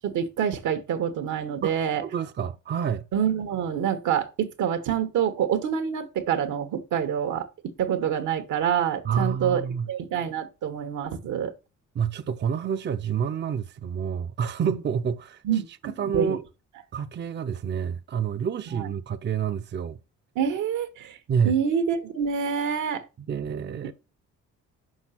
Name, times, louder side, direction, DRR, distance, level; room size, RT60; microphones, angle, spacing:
voice 1, 0.0-2.0 3.1-11.5 14.7-14.8 15.4-16.4 18.7-18.9 20.3-21.2 21.4-23.0, right 8 dB, 80° right, 1.3 m, -27 dB
voice 2, 1.6-3.1 9.0-9.9 11.9-15.4 15.8-16.4 16.9-20.0 21.3-21.5 23.2-23.9, right 7 dB, 35° right, 0.5 m, -28 dB
6.3 x 4.9 x 5.7 m
cardioid pair, 90°, 30 cm